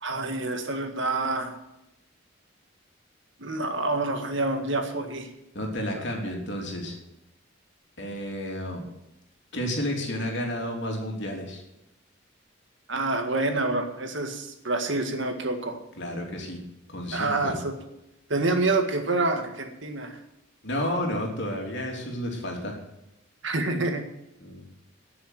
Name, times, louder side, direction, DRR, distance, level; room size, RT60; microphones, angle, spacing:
voice 1, 0.0-1.6 3.4-5.3 12.9-15.8 17.1-17.7 18.3-20.2 23.4-24.0, right 2 dB, 60° right, 5 dB, 1.8 m, -27 dB
voice 2, 5.5-7.0 8.0-8.8 9.5-11.6 16.0-16.6 16.9-17.5 20.6-22.8 24.4-24.6, left 1 dB, 60° left, 0 dB, 3.3 m, -31 dB
12.0 x 7.0 x 9.2 m, 0.87 s
head